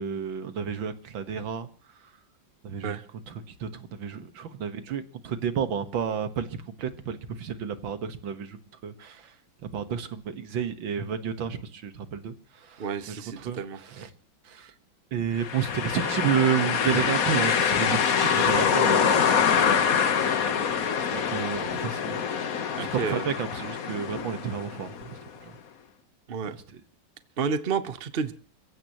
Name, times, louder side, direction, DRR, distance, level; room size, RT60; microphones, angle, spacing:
voice 1, 0.0-1.7 2.0-2.1 2.6-3.0 3.3-8.6 8.8-9.4 9.7-14.1 14.4-14.7 15.1-20.5 21.1-22.3 22.8-25.6 26.5-26.8, right 8 dB, 85° right, 2.1 m, -31 dB
voice 2, 12.8-13.8 22.7-23.2 26.3-26.6 27.4-28.3, right 6 dB, 40° right, 0.8 m, -30 dB
sound 1, 15.4-25.2, left 7 dB, 50° left, 1.4 m, -25 dB
29.0 x 16.0 x 3.0 m
omnidirectional pair, 2.1 m